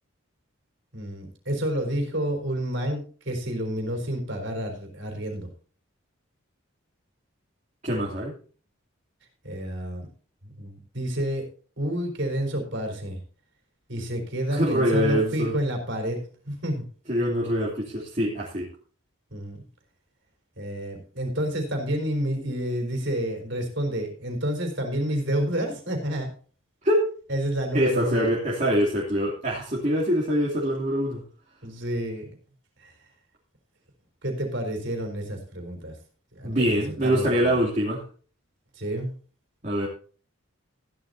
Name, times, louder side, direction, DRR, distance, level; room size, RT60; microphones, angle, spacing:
voice 1, 0.9-5.5 9.4-10.1 10.4-11.5 11.8-13.2 13.9-16.9 19.3-19.6 20.6-26.3 27.3-28.3 31.6-32.2 32.8-32.9 34.2-36.0 36.3-37.5 38.8-39.1, right 1 dB, 55° right, 4 dB, 4.2 m, -29 dB
voice 2, 7.8-8.3 14.5-15.5 17.1-18.7 26.8-27.1 27.7-31.2 36.4-38.0 39.6-39.9, equal, 35° right, -5 dB, 2.8 m, -24 dB
15.5 x 11.5 x 2.8 m, 0.40 s
head